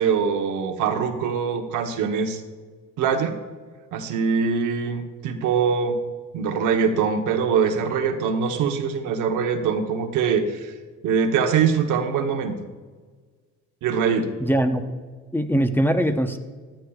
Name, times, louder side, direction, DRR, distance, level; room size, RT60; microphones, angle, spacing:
voice 1, 0.0-2.4 3.0-3.4 3.9-6.0 6.3-10.7 11.0-12.5 13.8-14.3, right 6 dB, 90° right, 6 dB, 1.0 m, -23 dB
voice 2, 14.4-14.8 15.3-16.4, right 1 dB, 5° left, 7 dB, 0.8 m, -21 dB
14.0 x 11.5 x 2.4 m, 1.5 s
cardioid pair, 90°, 30 cm